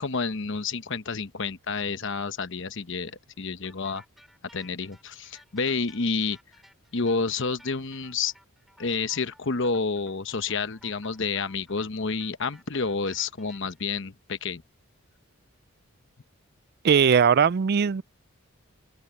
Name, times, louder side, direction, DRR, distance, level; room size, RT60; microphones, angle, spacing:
voice 1, 0.0-4.0 4.5-6.4 6.9-8.3 8.8-14.6, left 4 dB, 60° left, 1.0 m, -29 dB
sound 1, 3.6-13.9, equal, ahead, 7.1 m, -57 dB
voice 2, 16.8-18.0, right 7 dB, 45° right, 0.4 m, -19 dB
open air
head